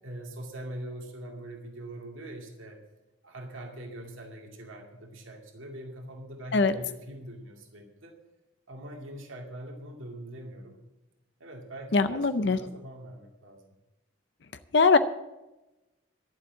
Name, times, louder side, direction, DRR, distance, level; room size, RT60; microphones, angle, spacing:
voice 1, 0.0-2.8 3.2-8.2 8.7-10.8 11.4-13.7, right 1 dB, 85° right, 1 dB, 2.2 m, -42 dB
voice 2, 11.9-12.6 14.7-15.0, left 4 dB, 60° left, 11 dB, 0.6 m, -21 dB
12.0 x 7.4 x 8.7 m, 1.0 s
head